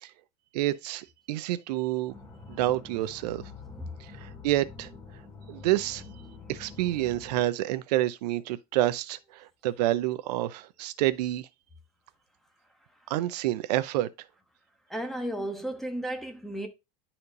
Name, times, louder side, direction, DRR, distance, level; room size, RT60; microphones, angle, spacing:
voice 1, 0.5-2.1 2.5-3.5 4.0-4.9 5.5-6.0 6.5-11.5 13.1-14.1, right 15 dB, 85° right, 0.6 m, -28 dB
sound 1, 2.1-7.4, left 4 dB, 25° left, 3.4 m, -46 dB
voice 2, 14.9-16.7, right 1 dB, ahead, 1.2 m, -34 dB
11.0 x 4.4 x 2.6 m
supercardioid pair, 145°, 20 cm